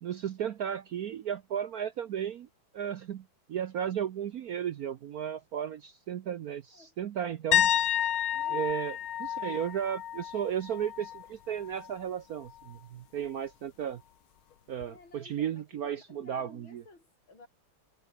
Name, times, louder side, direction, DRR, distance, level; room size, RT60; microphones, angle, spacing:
voice 1, 0.0-2.5 2.7-7.7 8.5-14.0 14.7-16.8, right 9 dB, 60° right, 1.0 m, -34 dB
voice 2, 7.2-8.1 8.3-8.7 14.9-17.5, left 3 dB, 70° left, 6.1 m, -55 dB
sound 1, 7.5-11.3 11.6-11.9 14.8-14.9, left 10 dB, 85° left, 2.1 m, -30 dB
omnidirectional pair, 2.2 m